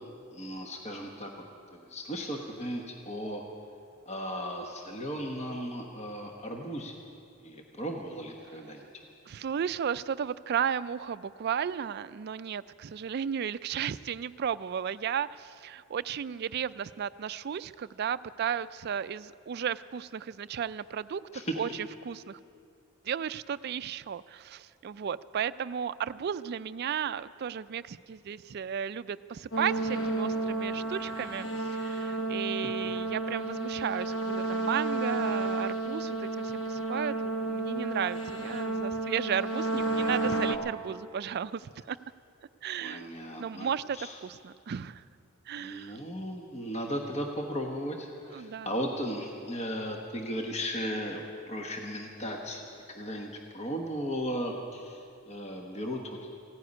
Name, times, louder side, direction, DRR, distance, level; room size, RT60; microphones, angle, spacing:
voice 1, 0.3-1.4 1.7-3.4 4.0-7.0 7.4-9.0 21.3-21.6 42.8-44.2 45.6-56.3, equal, 35° left, 1 dB, 1.1 m, -36 dB
voice 2, 9.3-21.2 21.6-22.4 23.0-37.2 37.5-42.0 42.6-43.1 43.4-45.0 45.5-46.0 48.3-48.7, right 8 dB, 50° right, 15 dB, 0.3 m, -34 dB
sound 1, 29.5-40.6, right 2 dB, 60° left, 1.1 m, -31 dB
15.5 x 9.3 x 9.7 m, 2.5 s
head